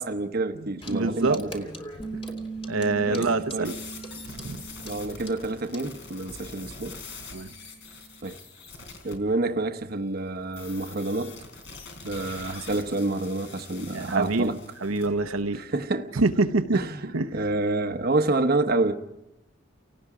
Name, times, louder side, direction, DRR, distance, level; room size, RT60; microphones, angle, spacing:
voice 1, 0.0-1.7 3.0-3.7 4.8-7.0 8.2-8.4 9.0-11.4 12.0-14.6 15.5-16.1 16.7-17.0 17.3-18.9, right 2 dB, 45° right, 1.0 m, -28 dB
voice 2, 0.6-1.4 2.7-3.7 4.3-4.6 7.3-7.5 13.9-14.5 14.8-15.6 16.2-16.9 17.1-17.3, right 3 dB, 80° right, 1.0 m, -25 dB
Clock, 0.8-6.0, equal, 25° left, 2.8 m, -44 dB
Bass guitar, 2.0-6.3 6.6-8.2, right 4 dB, ahead, 1.8 m, -41 dB
sound 1, 3.6-9.2 10.5-15.1, left 4 dB, 60° left, 4.2 m, -44 dB
30.0 x 18.5 x 5.0 m
head